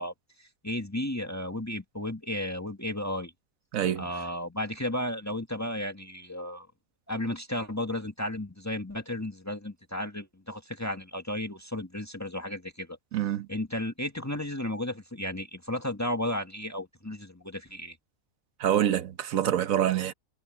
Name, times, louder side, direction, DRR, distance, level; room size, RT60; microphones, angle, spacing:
voice 1, 0.0-3.3 3.9-6.7 7.1-13.0 13.5-18.0, left 1 dB, 10° left, 1.8 m, -34 dB
voice 2, 3.7-4.1 13.1-13.5 18.6-20.1, right 11 dB, 80° right, 1.4 m, -26 dB
omnidirectional pair, 1.4 m